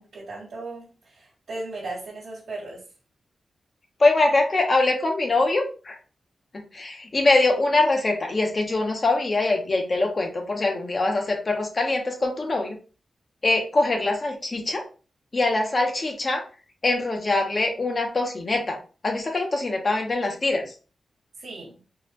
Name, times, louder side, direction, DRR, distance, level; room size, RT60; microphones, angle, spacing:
voice 1, 0.0-2.8 21.4-21.8, right 2 dB, 80° right, -6 dB, 1.5 m, -37 dB
voice 2, 4.0-6.0 6.7-12.8 13.4-14.8 15.3-16.4 16.8-20.7, left 2 dB, 40° left, 2 dB, 1.0 m, -23 dB
4.0 x 2.5 x 2.9 m, 0.36 s
wide cardioid pair, 90°, 0 cm